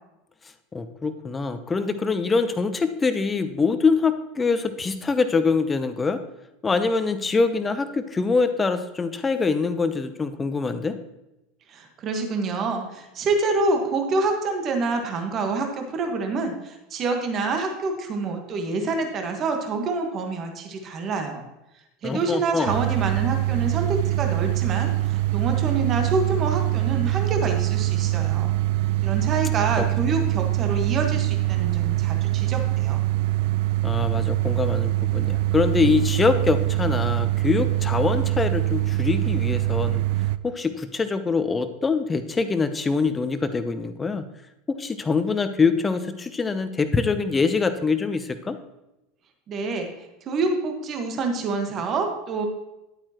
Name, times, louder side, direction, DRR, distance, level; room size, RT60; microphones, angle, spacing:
voice 1, 0.7-6.2 6.6-10.9 22.0-22.7 29.8-29.9 33.8-40.0 40.4-44.3 44.8-48.6, left 4 dB, 20° left, 10 dB, 0.8 m, -24 dB
voice 2, 11.7-21.4 22.0-28.5 29.0-33.0 49.5-52.5, right 3 dB, 40° right, 4 dB, 1.5 m, -27 dB
sound 1, 22.6-40.4, right 16 dB, 60° right, 0.3 m, -24 dB
11.0 x 8.7 x 3.0 m, 0.94 s
figure-of-eight pair, 75°, 0 cm